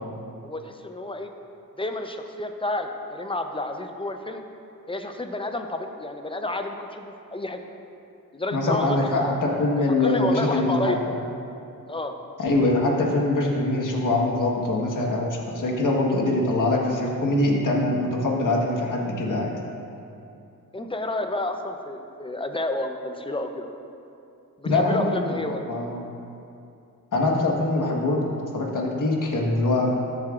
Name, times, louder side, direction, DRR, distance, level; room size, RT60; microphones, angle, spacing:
voice 1, 0.4-1.3 1.8-4.4 4.9-7.6 8.3-9.3 10.0-11.0 11.9-12.2 20.7-23.7 24.6-25.6, left 2 dB, 15° left, 5 dB, 0.7 m, -30 dB
voice 2, 8.5-10.9 12.4-19.5 24.6-26.0 27.1-29.9, left 2 dB, 65° left, -1 dB, 1.5 m, -23 dB
13.5 x 7.6 x 2.5 m, 2.7 s
cardioid pair, 85°, 34 cm